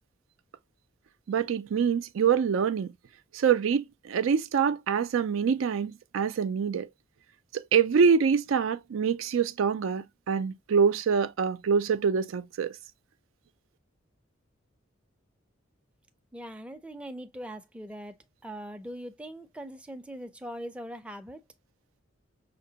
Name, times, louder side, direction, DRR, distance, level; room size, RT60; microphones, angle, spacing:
voice 1, 1.3-2.9 3.3-6.9 7.5-12.8, right 6 dB, 85° right, 0.4 m, -25 dB
voice 2, 16.3-18.1 18.4-21.4, equal, 5° right, 0.4 m, -41 dB
5.7 x 2.2 x 2.7 m
head